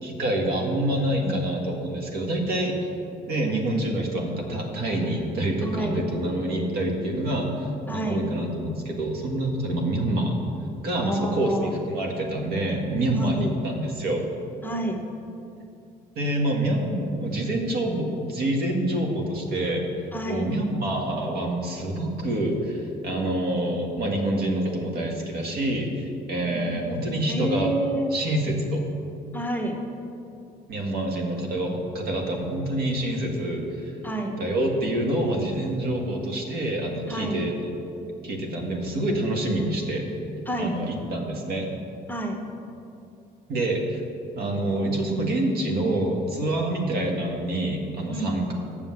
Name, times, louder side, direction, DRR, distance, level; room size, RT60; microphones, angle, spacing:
voice 1, 0.0-2.8 3.3-10.4 10.8-14.2 16.1-19.8 20.3-27.7 28.1-28.8 30.7-33.9 34.4-37.5 38.2-40.1 40.6-41.7 43.5-44.0 44.3-48.5, right 1 dB, 65° right, 1 dB, 1.7 m, -26 dB
voice 2, 3.4-3.9 5.6-6.0 7.9-8.2 11.0-11.7 13.1-13.5 14.6-15.0 20.1-20.4 26.5-28.1 29.3-29.7 34.0-34.4 37.1-37.4 40.5-40.8 42.1-42.4 48.1-48.4, right 1 dB, 10° left, 2 dB, 1.0 m, -29 dB
7.7 x 6.8 x 7.2 m, 2.6 s
cardioid pair, 110°, 17 cm